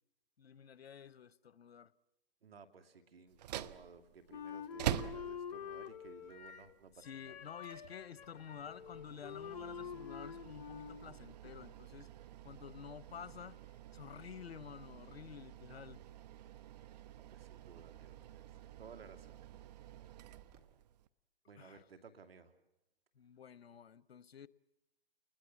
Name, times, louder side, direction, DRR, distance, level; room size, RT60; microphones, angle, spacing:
voice 1, 0.4-1.9 7.0-12.1 12.4-13.6 13.9-16.0 21.6-21.8 23.2-24.5, left 8 dB, 80° left, 0.9 m, -51 dB
voice 2, 2.4-7.3 17.1-19.4 21.5-22.5, right 5 dB, 70° right, 2.7 m, -57 dB
sound 1, 3.3-21.1, right 11 dB, 40° right, 0.8 m, -47 dB
Wind instrument woodwind instrument, 4.3-6.7 7.0-11.1, left 8 dB, 45° left, 1.0 m, -47 dB
Water tap faucet / Drip, 10.4-20.6, right 6 dB, 25° right, 1.9 m, -68 dB
30.0 x 21.0 x 7.3 m
hypercardioid pair, 135°, 31 cm